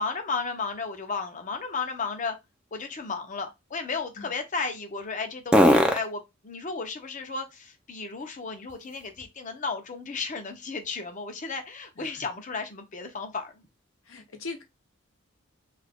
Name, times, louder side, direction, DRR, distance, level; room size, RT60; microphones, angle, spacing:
voice 1, 0.0-2.4 2.7-13.6, left 4 dB, 40° left, 0.6 m, -34 dB
sound 1, 0.5-9.6 10.0-13.8, equal, 5° right, 0.4 m, -31 dB
voice 2, 14.0-14.6, left 3 dB, 85° left, 0.8 m, -40 dB
2.8 x 2.4 x 3.4 m
head